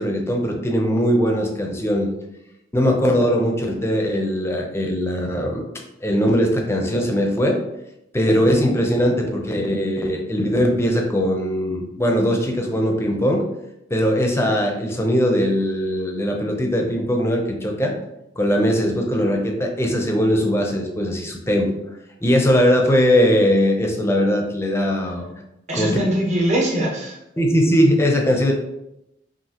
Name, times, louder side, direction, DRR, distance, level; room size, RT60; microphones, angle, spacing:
voice 1, 0.0-2.1 2.7-5.6 6.0-7.6 8.1-13.4 13.9-17.9 18.4-21.7 22.2-25.3 25.7-26.0 27.4-28.5, equal, 15° left, 1 dB, 0.6 m, -20 dB
voice 2, 25.7-27.2, right 1 dB, 40° right, -2 dB, 1.1 m, -21 dB
5.6 x 2.6 x 2.9 m, 0.85 s
head